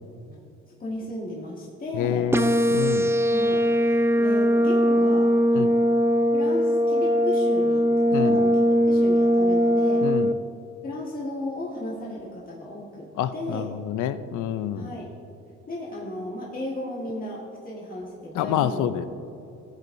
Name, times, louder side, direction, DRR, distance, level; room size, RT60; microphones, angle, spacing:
voice 1, 0.8-2.4 3.3-5.9 6.3-10.0 10.8-13.7 14.7-15.1 15.7-18.8, left 1 dB, 30° left, -5 dB, 1.7 m, -35 dB
voice 2, 2.0-3.1 5.5-5.7 8.1-8.4 10.0-10.3 13.2-14.9 18.3-19.1, left 10 dB, 80° left, 13 dB, 0.6 m, -27 dB
sound 1, 2.3-10.3, equal, 10° right, 0.5 m, -20 dB
14.0 x 8.2 x 2.7 m, 2.8 s
cardioid pair, 90°, 30 cm